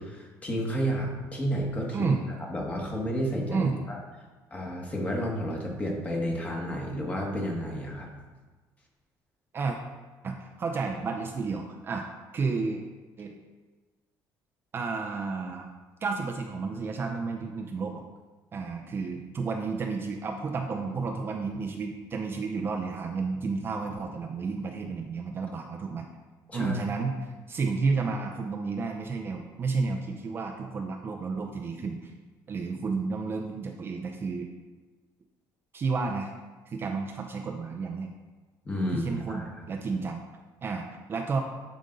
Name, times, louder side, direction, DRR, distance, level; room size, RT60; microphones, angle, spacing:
voice 1, 0.0-2.1 2.5-4.0 4.5-8.1 26.5-26.8 38.6-39.6, equal, 20° left, -1 dB, 1.5 m, -31 dB
voice 2, 10.2-12.0 12.3-12.8 13.2-13.3 14.7-15.7 16.0-18.0 18.5-26.1 26.5-32.1 32.5-34.5 35.7-36.3 36.7-38.1 38.9-40.2 40.6-41.4, right 4 dB, 30° right, 2 dB, 0.6 m, -31 dB
10.5 x 5.2 x 3.9 m, 1.3 s
cardioid pair, 155°, 8 cm